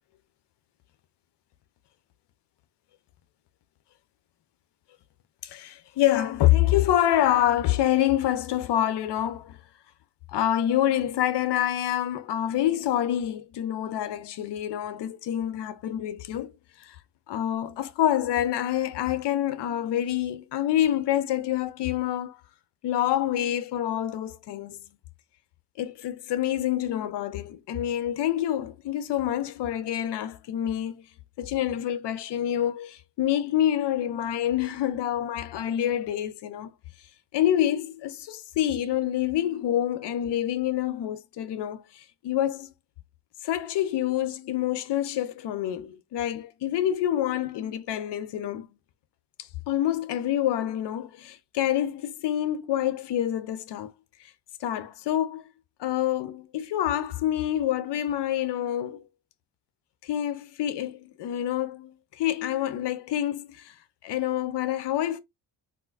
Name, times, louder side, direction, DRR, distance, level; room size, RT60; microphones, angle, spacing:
voice 1, 5.4-9.6 10.3-16.5 16.8-17.0 17.3-22.4 22.8-24.8 25.8-31.0 31.4-36.7 37.3-42.7 43.4-48.7 49.7-53.9 54.6-55.5 55.8-59.0 60.0-63.7 64.0-65.2, left 11 dB, 80° left, 0.6 m, -27 dB
3.6 x 2.4 x 2.4 m
cardioid pair, 110°, 41 cm